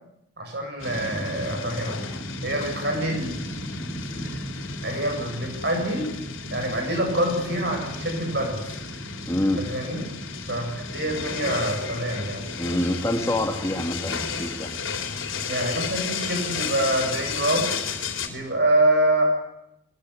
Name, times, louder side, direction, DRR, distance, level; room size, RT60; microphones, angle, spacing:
voice 1, 0.4-2.0 2.4-3.3 4.1-4.3 4.8-6.2 6.5-8.8 9.6-10.0 10.5-12.4 15.5-17.7 18.3-19.2, right 1 dB, 50° right, 3 dB, 7.8 m, -26 dB
sound 1, 0.8-18.3, left 4 dB, 70° left, 3.6 m, -33 dB
voice 2, 9.3-9.6 12.6-14.7, left 1 dB, 15° left, 3 dB, 2.2 m, -26 dB
22.0 x 21.5 x 9.9 m, 0.83 s
head